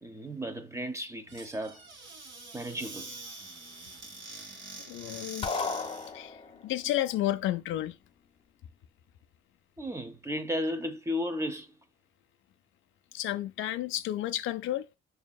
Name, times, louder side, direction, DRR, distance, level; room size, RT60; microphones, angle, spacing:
voice 1, 0.0-1.8 2.5-3.1 9.8-11.8, equal, 15° right, 0.6 m, -34 dB
Squeak / Cupboard open or close, 1.3-6.1, right 3 dB, 70° right, 1.5 m, -45 dB
voice 2, 4.8-5.6 6.1-8.0 13.1-14.9, left 13 dB, 80° left, 0.4 m, -32 dB
sound 1, 5.4-6.7, left 4 dB, 30° left, 0.5 m, -34 dB
6.0 x 2.7 x 2.2 m
cardioid pair, 90°, 20 cm